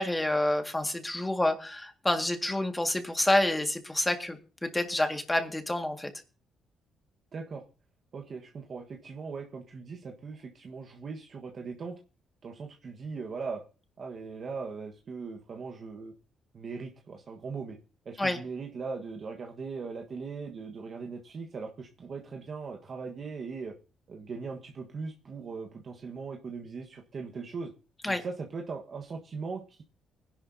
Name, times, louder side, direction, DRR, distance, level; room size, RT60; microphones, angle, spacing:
voice 1, 0.0-6.1 18.2-18.4 28.0-28.2, left 1 dB, 10° left, 5 dB, 2.0 m, -28 dB
voice 2, 7.3-7.6 8.1-11.9 12.4-13.6 14.0-16.1 16.5-17.8 18.0-23.7 24.1-27.7 28.1-29.8, right 4 dB, 50° right, 2 dB, 1.5 m, -39 dB
20.0 x 11.0 x 2.8 m, 0.35 s
cardioid pair, 90°, 0 cm